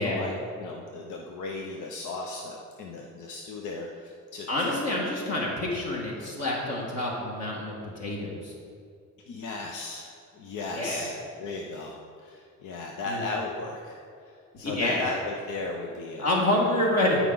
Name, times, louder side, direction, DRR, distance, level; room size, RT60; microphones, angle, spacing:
voice 1, 0.0-4.7 9.3-16.3, left 3 dB, 80° left, 1 dB, 0.8 m, -36 dB
voice 2, 4.5-8.5 10.7-11.1 13.1-13.2 14.6-15.0 16.2-17.2, left 1 dB, 55° left, -3 dB, 1.8 m, -27 dB
13.0 x 4.8 x 3.9 m, 2.3 s
cardioid pair, 90°, 30 cm